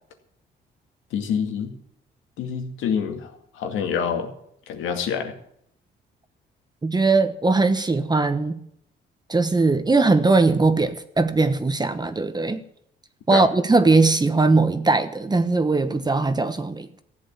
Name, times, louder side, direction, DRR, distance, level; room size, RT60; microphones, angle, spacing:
voice 1, 1.1-1.7 2.4-4.3 4.7-5.3 13.3-13.5, left 7 dB, 85° left, 5 dB, 2.2 m, -26 dB
voice 2, 6.8-8.6 9.3-12.6 13.3-16.9, right 3 dB, 20° right, 10 dB, 1.1 m, -20 dB
14.5 x 7.9 x 8.8 m, 0.70 s
cardioid pair, 90°, 20 cm